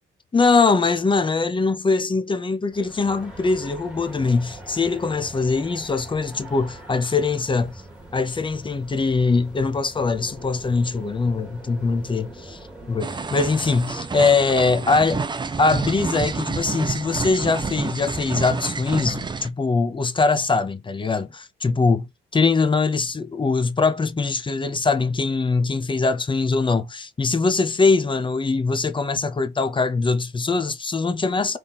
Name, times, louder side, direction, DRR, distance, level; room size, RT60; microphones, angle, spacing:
voice 1, 0.3-7.7 8.1-12.6 12.9-15.3 15.6-22.1 22.3-31.6, left 4 dB, 25° left, 0.7 m, -22 dB
sound 1, 2.7-15.0, right 1 dB, 5° right, 1.9 m, -42 dB
sound 2, 13.0-19.5, right 4 dB, 25° right, 0.6 m, -29 dB
3.7 x 3.1 x 4.2 m
cardioid pair, 90°, 20 cm